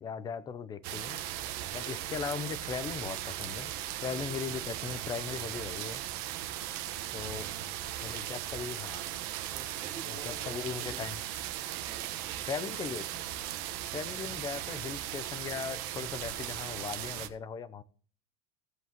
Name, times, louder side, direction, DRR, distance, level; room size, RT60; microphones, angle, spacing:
voice 1, 0.0-1.2 1.7-3.7 4.0-6.0 7.1-7.5 8.0-9.0 10.1-11.2 12.4-13.0 13.9-17.8, left 6 dB, 20° left, 15 dB, 0.6 m, -38 dB
sound 1, 0.8-17.3, right 12 dB, 60° right, 1.2 m, -38 dB
voice 2, 9.5-11.0 11.8-12.9 13.3-13.6, right 4 dB, 25° right, -2 dB, 2.0 m, -50 dB
15.5 x 7.9 x 3.0 m, 0.41 s
cardioid pair, 160°, 18 cm